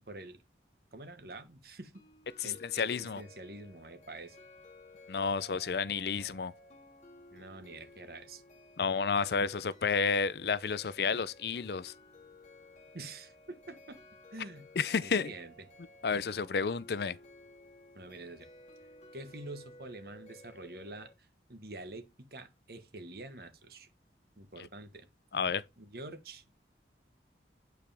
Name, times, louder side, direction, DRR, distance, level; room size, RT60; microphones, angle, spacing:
voice 1, 0.1-0.4 0.9-1.9 2.4-4.4 7.3-8.4 12.9-14.0 14.3-14.6 15.0-15.7 17.9-18.5 19.1-23.9 24.4-25.1 25.8-26.7, right 2 dB, 60° right, 1.4 m, -47 dB
sound 1, 1.9-21.1, left 1 dB, 40° left, 1.8 m, -56 dB
voice 2, 2.4-3.2 5.1-6.5 8.8-11.9 14.8-15.3 16.0-17.2 25.3-25.6, left 5 dB, 65° left, 0.5 m, -31 dB
9.0 x 4.9 x 3.4 m
head